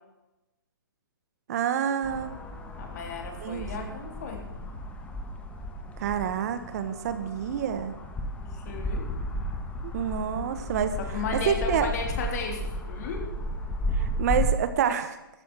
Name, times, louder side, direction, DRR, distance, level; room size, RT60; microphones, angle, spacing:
voice 1, 1.5-2.3 3.4-3.9 6.0-7.9 9.8-11.0 11.5-11.9 13.9-15.2, right 8 dB, 45° right, 10 dB, 1.4 m, -28 dB
sound 1, 2.0-14.5, left 1 dB, 10° left, 1.5 m, -33 dB
voice 2, 2.8-4.4 8.5-9.1 11.0-13.3, left 5 dB, 45° left, 4 dB, 3.5 m, -35 dB
13.5 x 12.5 x 6.3 m, 0.96 s
hypercardioid pair, 145°, 12 cm